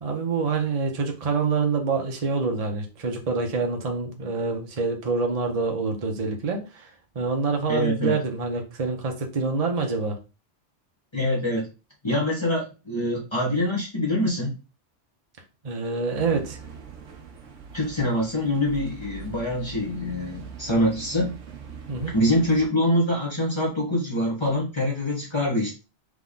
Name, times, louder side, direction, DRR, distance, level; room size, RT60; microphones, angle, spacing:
voice 1, 0.0-6.9 7.1-10.2 15.6-16.6 21.9-22.1, right 4 dB, 35° right, 0.9 m, -26 dB
voice 2, 7.7-8.2 11.1-11.7 12.0-14.6 17.7-21.3 22.1-25.7, left 1 dB, 25° left, 1.2 m, -24 dB
sound 1, 16.1-22.7, right 5 dB, 85° right, 1.2 m, -42 dB
3.8 x 3.4 x 3.7 m
omnidirectional pair, 1.2 m